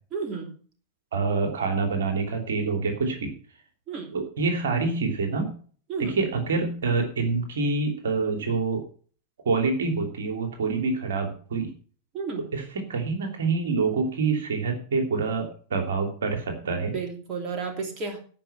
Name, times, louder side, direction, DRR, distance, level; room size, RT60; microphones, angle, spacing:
voice 1, 0.1-0.6 3.9-4.1 5.9-6.2 12.1-12.5 16.6-18.2, right 5 dB, 35° right, 3 dB, 2.8 m, -33 dB
voice 2, 1.1-3.3 4.1-5.5 6.0-8.8 9.4-11.7 12.5-16.9, right 4 dB, 65° right, 5 dB, 3.0 m, -26 dB
16.5 x 6.0 x 5.8 m, 0.43 s
figure-of-eight pair, 90°, 0 cm